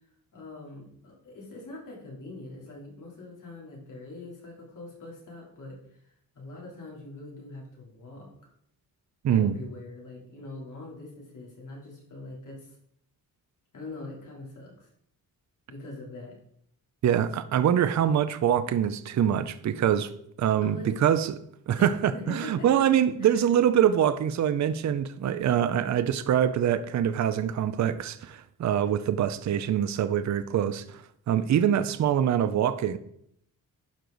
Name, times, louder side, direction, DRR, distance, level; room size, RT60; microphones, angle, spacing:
voice 1, 0.3-8.3 9.3-12.8 13.7-14.9 15.7-16.4 20.6-21.1 21.8-22.7 23.2-23.4, left 2 dB, 50° left, 3.2 m, -43 dB
voice 2, 17.0-20.1 20.4-21.3 21.7-33.0, right 9 dB, 50° right, 0.5 m, -24 dB
11.5 x 4.8 x 3.9 m
wide cardioid pair, 120°, 38 cm